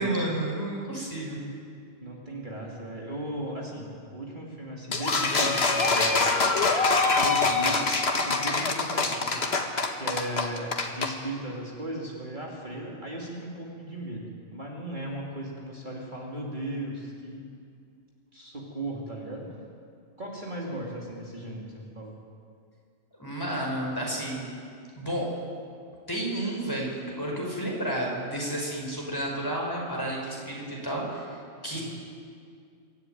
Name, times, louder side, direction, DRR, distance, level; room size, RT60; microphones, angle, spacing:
voice 1, 0.0-1.4 23.2-24.4 25.0-25.3 26.1-31.8, right 1 dB, 15° left, -2 dB, 5.1 m, -31 dB
voice 2, 2.0-6.2 7.1-9.5 10.0-17.4 18.3-19.5 20.2-22.1 31.7-31.8, right 1 dB, 40° right, -3 dB, 3.0 m, -37 dB
sound 1, 4.9-11.1, left 3 dB, 55° left, 1.7 m, -24 dB
24.5 x 13.0 x 9.3 m, 2.3 s
omnidirectional pair, 1.3 m